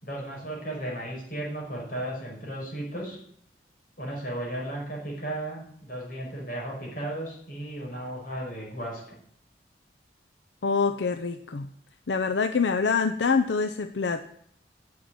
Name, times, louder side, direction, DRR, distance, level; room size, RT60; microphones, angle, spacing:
voice 1, 0.0-3.2 4.0-9.0, right 1 dB, 50° left, -2 dB, 5.4 m, -35 dB
voice 2, 10.6-11.7 12.1-14.2, left 5 dB, 85° left, 9 dB, 0.6 m, -25 dB
10.5 x 7.8 x 9.5 m, 0.69 s
head